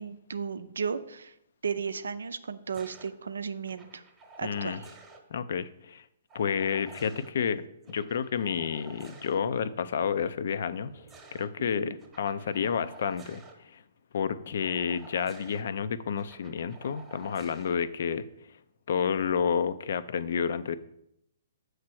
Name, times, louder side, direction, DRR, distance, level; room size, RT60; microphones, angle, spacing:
voice 1, 0.0-1.3 1.6-4.0 4.4-4.9 11.8-11.9, right 6 dB, 70° right, 11 dB, 0.5 m, -34 dB
sound 1, 2.7-3.1 3.7-5.2 6.3-7.3 7.8-9.4 10.7-11.5 12.0-13.5 14.6-15.6 16.2-17.7 19.0-19.4, right 3 dB, 15° right, 1.0 m, -51 dB
voice 2, 4.4-4.8 5.3-6.0 6.3-10.9 11.3-13.8 14.1-18.2 18.9-20.8, left 7 dB, 60° left, 14 dB, 0.4 m, -30 dB
7.3 x 3.2 x 6.1 m, 0.78 s
figure-of-eight pair, 125°, 0 cm